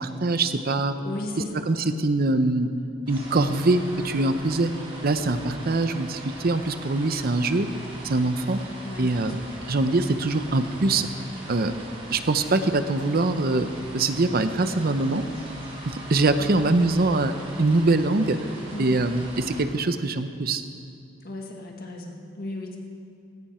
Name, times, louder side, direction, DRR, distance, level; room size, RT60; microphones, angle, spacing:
voice 1, 0.0-1.0 1.7-2.7 3.1-4.7 5.0-7.7 8.0-8.6 9.0-9.4 9.7-11.1 11.5-11.7 12.1-15.2 15.9-18.4 18.8-20.6, right 2 dB, 50° right, 10 dB, 0.7 m, -23 dB
voice 2, 1.0-1.7 8.8-9.5 16.4-16.8 18.7-19.1 21.2-22.8, left 2 dB, 55° left, 1 dB, 1.8 m, -36 dB
sound 1, 3.1-19.6, right 1 dB, 30° right, 3.5 m, -41 dB
16.5 x 14.0 x 4.4 m, 2.5 s
head